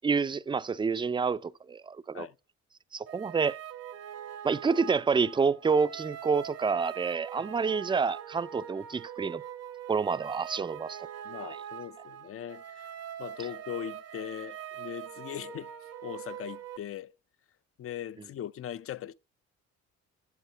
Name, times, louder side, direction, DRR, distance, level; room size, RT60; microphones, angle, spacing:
voice 1, 0.0-2.3 2.9-3.6 4.4-9.4 9.9-11.0 11.4-11.6, right 5 dB, 15° right, 0.4 m, -28 dB
sound 1, 3.1-16.8, right 10 dB, 55° right, 0.9 m, -43 dB
voice 2, 11.2-12.9 13.2-15.7 16.0-17.2 17.8-19.1, left 10 dB, 50° left, 0.6 m, -40 dB
8.3 x 7.3 x 5.5 m
supercardioid pair, 75°, 29 cm